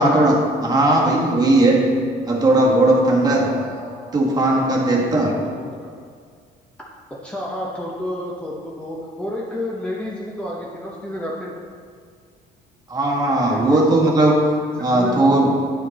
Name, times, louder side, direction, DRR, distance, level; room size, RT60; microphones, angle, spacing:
voice 1, 0.0-1.9 2.2-3.5 4.1-5.3 12.9-14.4 14.8-15.5, right 2 dB, 25° right, -3 dB, 1.5 m, -17 dB
voice 2, 3.3-4.2 5.5-5.9 7.1-11.5 13.5-13.9 14.8-15.3, left 1 dB, 5° left, -4 dB, 0.9 m, -30 dB
9.1 x 5.2 x 4.2 m, 2.1 s
cardioid pair, 110°, 17 cm